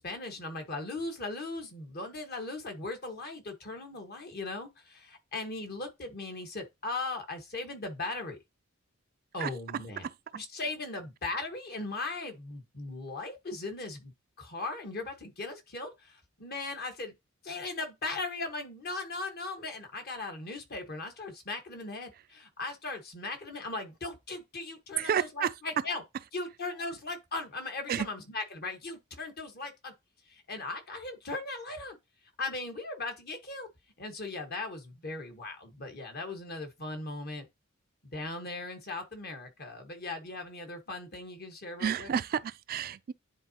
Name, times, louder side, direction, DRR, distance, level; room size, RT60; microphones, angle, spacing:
voice 1, 0.0-8.4 9.3-10.1 10.3-17.1 17.4-26.0 26.3-29.9 30.3-32.0 32.4-33.7 34.0-37.5 38.0-42.1, left 3 dB, 50° left, 1.4 m, -38 dB
voice 2, 25.0-25.5 27.9-28.1 41.8-43.1, right 8 dB, 45° right, 0.3 m, -30 dB
10.0 x 3.8 x 2.9 m
head